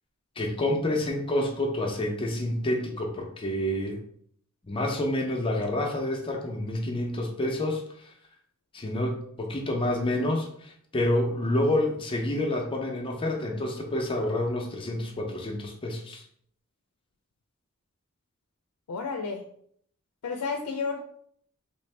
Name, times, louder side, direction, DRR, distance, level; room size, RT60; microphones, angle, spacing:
voice 1, 0.4-4.0 4.6-8.1 8.7-16.2, left 1 dB, 25° left, 1 dB, 0.5 m, -28 dB
voice 2, 18.9-19.4 20.2-21.0, left 4 dB, 85° left, 3 dB, 0.4 m, -31 dB
3.6 x 2.5 x 3.2 m, 0.64 s
head